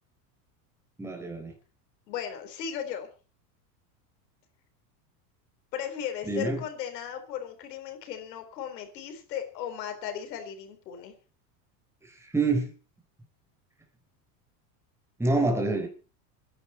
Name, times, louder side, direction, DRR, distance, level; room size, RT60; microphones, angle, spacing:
voice 1, 1.0-1.5 6.3-6.6 12.0-12.7 15.2-15.9, right 2 dB, 5° right, 2 dB, 4.2 m, -27 dB
voice 2, 2.1-3.1 5.7-11.1, left 9 dB, 90° left, 6 dB, 4.2 m, -36 dB
25.5 x 11.0 x 4.4 m, 0.36 s
supercardioid pair, 130°, 48 cm